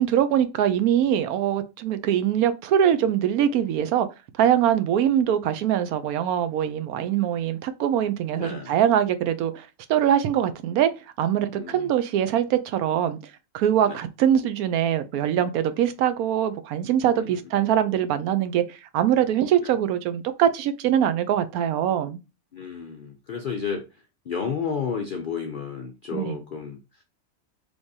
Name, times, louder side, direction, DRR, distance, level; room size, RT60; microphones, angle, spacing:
voice 1, 0.0-4.1 4.4-10.9 11.2-13.2 13.5-22.2 26.1-26.3, right 10 dB, 85° right, 1.1 m, -23 dB
voice 2, 8.3-8.8 11.5-11.9 13.8-14.0 17.1-17.5 19.6-19.8 22.5-27.0, left 6 dB, 75° left, 0.4 m, -32 dB
3.4 x 3.2 x 2.7 m
omnidirectional pair, 1.5 m